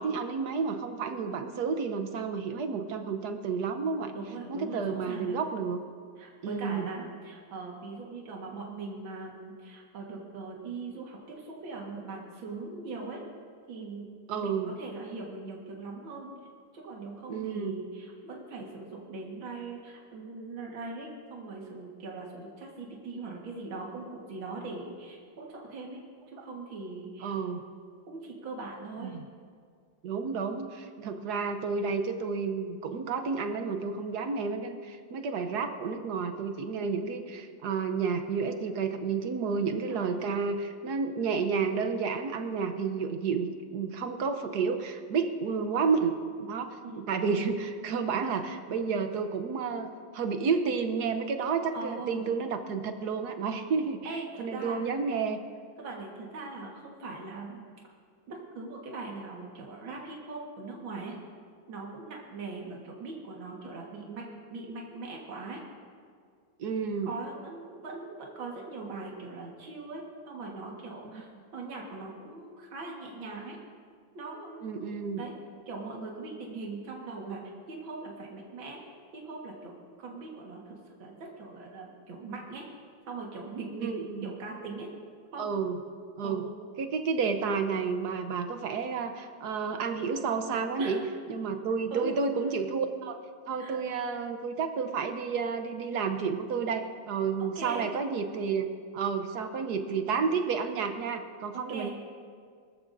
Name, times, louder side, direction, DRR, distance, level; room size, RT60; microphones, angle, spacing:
voice 1, 0.0-4.1 4.5-5.8 6.4-6.9 14.3-14.7 17.3-17.7 27.2-27.6 29.0-29.2 30.0-49.9 50.1-54.0 54.4-55.4 66.6-67.1 71.1-71.2 74.6-75.2 83.8-84.3 85.4-85.8 86.2-86.4 86.8-91.0 91.3-93.2 93.5-98.7 98.9-101.9, right 5 dB, 60° right, 7 dB, 1.3 m, -31 dB
voice 2, 4.1-5.4 6.2-13.2 13.7-14.1 14.3-16.3 16.7-26.0 26.3-27.4 28.0-29.2 31.0-31.3 39.9-40.2 46.8-47.0 51.7-52.3 54.0-54.8 55.8-57.6 58.3-61.2 61.7-65.6 67.0-71.3 71.5-73.6 74.1-75.3 75.7-77.4 77.7-78.8 79.1-79.7 80.0-82.6 83.1-83.9 84.2-84.9 85.3-85.5 86.2-86.4 90.8-91.0 91.9-92.2 93.6-93.8 97.6-97.9 101.5-101.9, right 3 dB, 80° right, -2 dB, 2.4 m, -41 dB
24.0 x 14.0 x 2.6 m, 2.1 s
omnidirectional pair, 2.1 m